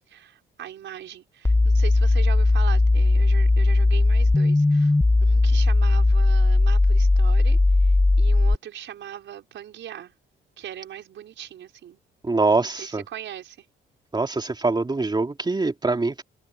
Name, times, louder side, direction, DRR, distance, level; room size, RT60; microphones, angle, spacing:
voice 1, 0.1-5.0 5.2-10.1 10.6-12.0 12.6-13.7, right 10 dB, 70° right, 5.4 m, -39 dB
sound 1, 1.4-8.5, left 2 dB, 10° left, 0.8 m, -18 dB
voice 2, 12.2-13.0 14.1-16.2, right 3 dB, 20° right, 2.8 m, -24 dB
cardioid pair, 90°, 20 cm